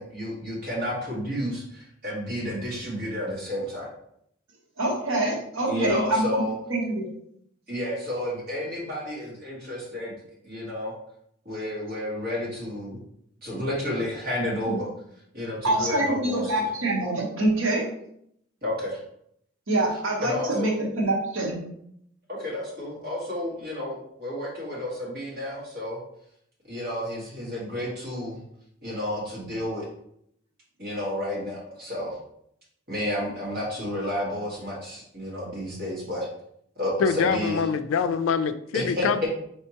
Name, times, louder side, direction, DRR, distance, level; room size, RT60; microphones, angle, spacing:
voice 1, 0.0-3.9 5.7-6.6 7.7-10.1 10.4-10.9 11.5-13.0 13.4-14.9 15.3-16.5 18.6-19.0 20.2-20.7 22.3-26.0 26.7-28.4 28.8-29.8 30.8-32.2 32.9-36.3 36.8-37.6 38.7-39.1, left 1 dB, 45° right, -6 dB, 1.7 m, -31 dB
voice 2, 4.8-6.4 6.7-7.1 14.6-14.8 15.6-17.9 19.7-21.6, right 2 dB, 80° right, -2 dB, 1.1 m, -25 dB
voice 3, 37.0-39.3, left 6 dB, 80° left, 11 dB, 0.3 m, -25 dB
4.5 x 3.3 x 2.9 m, 0.71 s
head